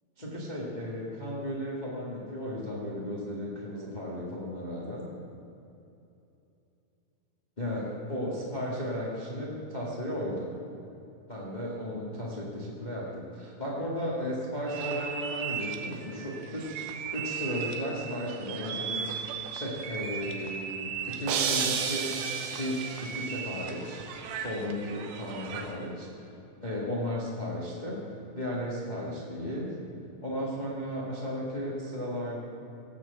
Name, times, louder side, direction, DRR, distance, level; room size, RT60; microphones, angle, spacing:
voice 1, 0.2-5.1 7.6-10.5 11.3-22.2 22.6-24.0 24.4-26.3 26.6-28.0 28.3-29.7 30.2-32.4, equal, 25° left, -5 dB, 0.9 m, -35 dB
sound 1, 14.7-25.9, right 7 dB, 70° right, 2.2 m, -38 dB
sound 2, 21.3-23.4, right 7 dB, 90° right, 2.9 m, -31 dB
17.5 x 6.2 x 8.0 m, 2.8 s
omnidirectional pair, 4.3 m